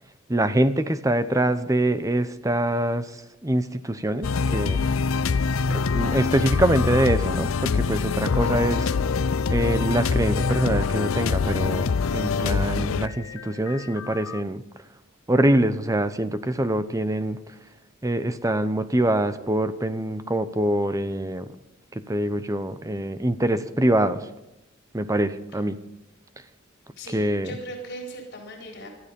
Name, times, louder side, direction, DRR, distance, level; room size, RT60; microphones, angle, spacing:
voice 1, 0.3-4.8 5.7-8.9 9.5-14.6 15.3-17.4 18.0-21.5 21.9-24.3 24.9-25.8 27.1-27.5, right 1 dB, 15° right, 12 dB, 0.8 m, -24 dB
sound 1, 4.2-14.4, left 5 dB, 75° left, 0.5 m, -24 dB
voice 2, 5.2-5.6 27.0-28.9, right 1 dB, 55° left, 0 dB, 4.3 m, -39 dB
18.5 x 13.0 x 5.4 m, 0.90 s
head